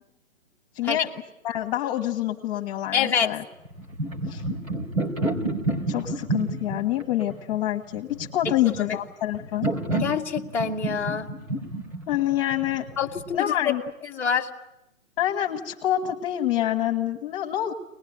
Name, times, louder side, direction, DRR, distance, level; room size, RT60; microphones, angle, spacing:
voice 1, 0.7-1.1 1.4-3.4 4.3-4.4 5.9-9.7 12.1-12.9 13.3-13.8 15.2-17.7, left 13 dB, 25° left, 2 dB, 1.6 m, -26 dB
voice 2, 2.9-3.3 8.9-9.0 10.0-11.3 13.0-13.7 14.1-14.5, left 7 dB, 5° left, -4 dB, 1.3 m, -26 dB
sound 1, 3.6-13.4, right 2 dB, 90° right, 3.9 m, -30 dB
24.0 x 20.5 x 8.8 m, 0.86 s
figure-of-eight pair, 130°, 39 cm